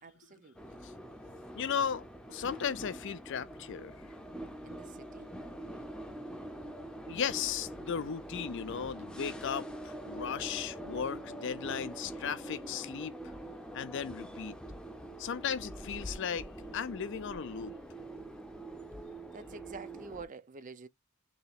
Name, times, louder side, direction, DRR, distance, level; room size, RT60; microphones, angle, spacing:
voice 1, 0.0-0.9 4.6-5.4 19.3-20.9, right 4 dB, 35° right, 0.5 m, -48 dB
sound 1, 0.5-20.2, right 1 dB, 5° left, 0.6 m, -44 dB
voice 2, 1.5-4.0 7.1-13.1 13.7-14.6 15.2-17.8, left 7 dB, 55° left, 0.4 m, -36 dB
3.2 x 2.9 x 4.1 m
head